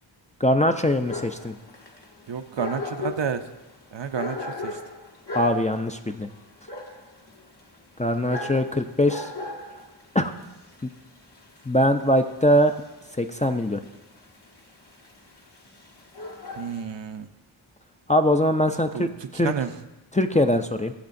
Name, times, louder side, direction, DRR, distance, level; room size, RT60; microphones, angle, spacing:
voice 1, 0.4-1.6 5.3-6.3 8.0-9.3 10.1-10.3 11.7-12.8 13.2-13.8 18.1-19.5 20.1-20.9, left 1 dB, 15° left, 6 dB, 0.5 m, -22 dB
Dog, 0.8-16.8, left 3 dB, 55° left, 1.4 m, -38 dB
voice 2, 2.3-3.4 3.9-4.4 4.6-4.8 16.6-17.3 18.9-19.1 19.3-19.7, right 7 dB, 65° right, 8 dB, 0.7 m, -30 dB
19.0 x 7.3 x 2.6 m, 1.0 s
wide cardioid pair, 50°, 47 cm